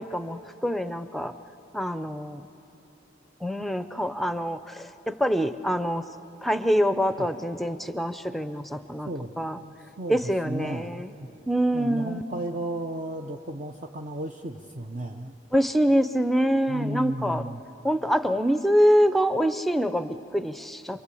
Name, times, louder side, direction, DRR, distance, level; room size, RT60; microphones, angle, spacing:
voice 1, 0.0-1.3 1.7-2.5 3.4-6.1 6.4-9.1 9.4-9.6 10.1-11.1 11.5-12.2 15.5-17.4 17.8-21.0, equal, ahead, 10 dB, 0.6 m, -25 dB
voice 2, 9.1-11.1 11.7-15.3 16.7-17.6, right 1 dB, 40° right, 2 dB, 0.7 m, -34 dB
28.0 x 23.5 x 8.4 m, 2.9 s
head